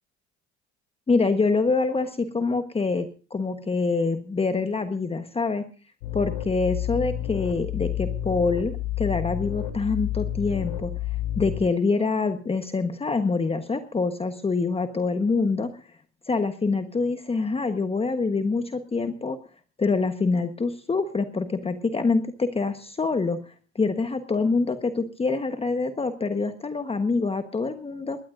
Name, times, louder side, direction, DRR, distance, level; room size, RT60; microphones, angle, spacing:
voice 1, 1.1-5.6 6.1-10.9 11.3-15.7 16.3-19.4 19.8-23.4 23.7-28.2, left 4 dB, 15° left, 8 dB, 1.2 m, -25 dB
sound 1, 6.0-11.6, left 12 dB, 80° left, 3.2 m, -30 dB
21.0 x 17.0 x 2.6 m, 0.36 s
supercardioid pair, 95°, 35 cm